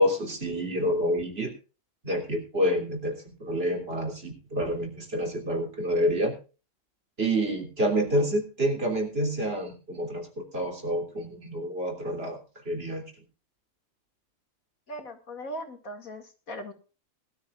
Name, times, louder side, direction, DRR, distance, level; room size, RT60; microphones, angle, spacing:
voice 1, 0.0-1.5 2.0-6.3 7.2-12.4 12.6-13.0, equal, 45° right, 2 dB, 3.4 m, -28 dB
voice 2, 14.9-16.7, equal, 80° left, 6 dB, 2.6 m, -39 dB
20.5 x 12.5 x 2.4 m, 0.33 s
omnidirectional pair, 1.5 m